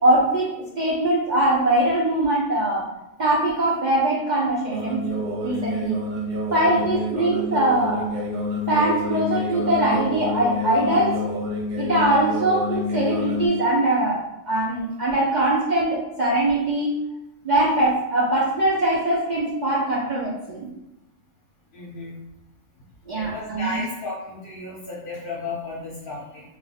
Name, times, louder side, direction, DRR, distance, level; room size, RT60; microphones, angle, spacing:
voice 1, 0.0-2.8 3.2-5.0 5.4-6.0 6.5-8.1 8.7-11.2 11.8-14.2 14.5-16.9 17.4-20.7 23.1-23.8, right 1 dB, 50° right, -5 dB, 0.6 m, -22 dB
sound 1, 4.7-13.5, left 2 dB, 70° right, 1.1 m, -28 dB
voice 2, 21.7-22.2 23.2-26.4, left 2 dB, 50° left, -6 dB, 0.9 m, -34 dB
2.5 x 2.3 x 4.0 m, 0.87 s
omnidirectional pair, 1.3 m